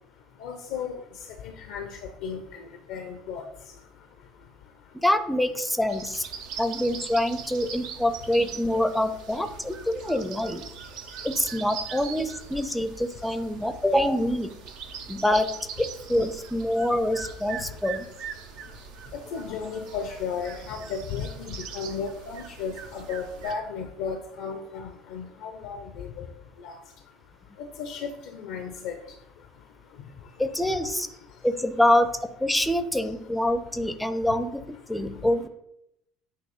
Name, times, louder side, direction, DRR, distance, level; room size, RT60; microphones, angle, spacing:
voice 1, 0.4-0.9 1.4-1.9 2.2-2.4 2.9-3.4 19.3-26.3 26.6-26.8 27.8-28.9, left 6 dB, 60° left, 6 dB, 0.6 m, -34 dB
voice 2, 4.9-6.3 6.6-10.6 11.2-14.5 15.1-15.5 15.8-18.1 30.4-31.1 31.4-35.5, left 1 dB, 5° left, 9 dB, 0.6 m, -25 dB
sound 1, 5.9-23.5, right 7 dB, 60° right, 0.7 m, -41 dB
8.6 x 3.0 x 5.1 m, 0.79 s
figure-of-eight pair, 60°, 0 cm